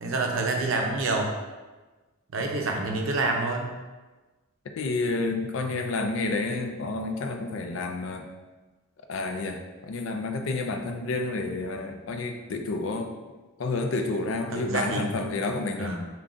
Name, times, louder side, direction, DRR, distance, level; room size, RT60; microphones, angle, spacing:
voice 1, 0.0-1.3 2.3-3.7 14.5-15.1 15.8-16.0, right 3 dB, 70° right, 2 dB, 0.5 m, -27 dB
voice 2, 4.8-8.3 9.1-13.1 13.6-16.0, left 3 dB, 65° left, 5 dB, 0.4 m, -30 dB
3.7 x 2.3 x 3.6 m, 1.2 s
head